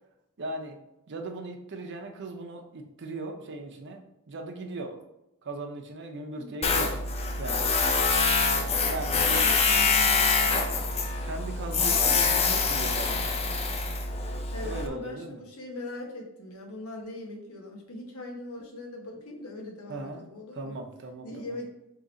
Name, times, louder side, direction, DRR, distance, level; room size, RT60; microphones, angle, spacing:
voice 1, 0.4-0.8 1.1-5.0 5.4-7.0 7.4-7.7 8.9-9.6 11.2-13.4 14.6-15.4 19.9-20.2 20.5-21.6, right 2 dB, 55° right, 4 dB, 0.6 m, -38 dB
Tools, 6.6-14.9, left 4 dB, 30° left, 0.4 m, -25 dB
voice 2, 9.4-10.9 11.9-12.2 14.5-20.7 21.2-21.7, left 2 dB, 75° left, 0 dB, 1.0 m, -41 dB
3.7 x 2.9 x 4.0 m, 0.87 s
head